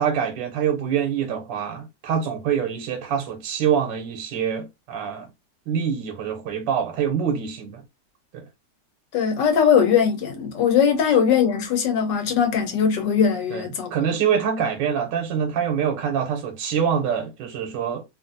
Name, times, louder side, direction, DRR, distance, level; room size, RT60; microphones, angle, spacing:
voice 1, 0.0-5.3 5.7-7.8 8.3-8.4 13.5-18.0, right 8 dB, 85° right, 1.3 m, -25 dB
voice 2, 9.1-13.9, left 7 dB, 75° left, 1.4 m, -20 dB
3.0 x 2.5 x 2.5 m
omnidirectional pair, 1.9 m